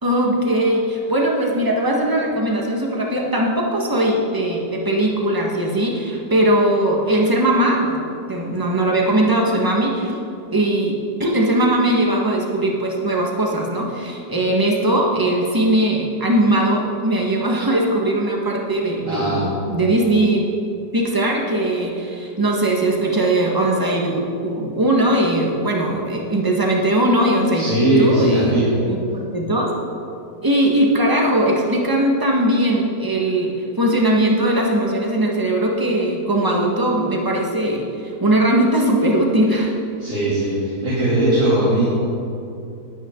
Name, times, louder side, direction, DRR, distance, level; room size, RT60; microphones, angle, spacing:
voice 1, 0.0-10.2 10.5-20.5 20.9-27.7 28.0-28.6 28.8-29.7 30.4-39.7, right 1 dB, 15° right, -1 dB, 1.4 m, -19 dB
voice 2, 19.1-19.4 27.5-28.6 40.0-41.8, right 1 dB, 50° right, -10 dB, 3.6 m, -19 dB
20.0 x 9.1 x 3.9 m, 2.6 s
omnidirectional pair, 1.8 m